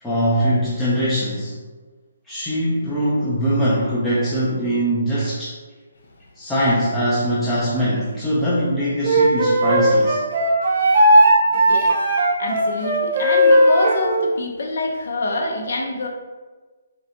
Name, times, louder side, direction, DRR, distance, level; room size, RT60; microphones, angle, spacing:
voice 1, 0.0-1.6 2.3-5.6 6.4-10.2, equal, 5° left, -10 dB, 0.5 m, -21 dB
Wind instrument woodwind instrument, 9.0-14.1, right 1 dB, 45° right, 0.8 m, -16 dB
voice 2, 11.5-12.0 12.4-16.1, left 2 dB, 60° left, 1 dB, 0.7 m, -26 dB
5.1 x 2.2 x 2.8 m, 1.3 s
hypercardioid pair, 160°, 0 cm